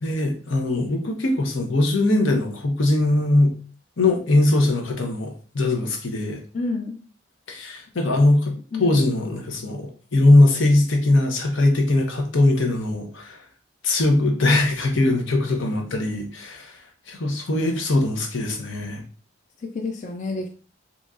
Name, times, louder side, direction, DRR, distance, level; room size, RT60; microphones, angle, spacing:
voice 1, 0.0-3.5 4.0-6.4 7.5-8.5 8.8-13.4 13.8-16.8 17.1-19.0, left 2 dB, 80° left, 2 dB, 0.8 m, -20 dB
voice 2, 6.5-7.0 8.7-9.0 19.6-20.5, left 3 dB, 40° left, 2 dB, 0.3 m, -29 dB
3.9 x 2.9 x 2.4 m, 0.40 s
head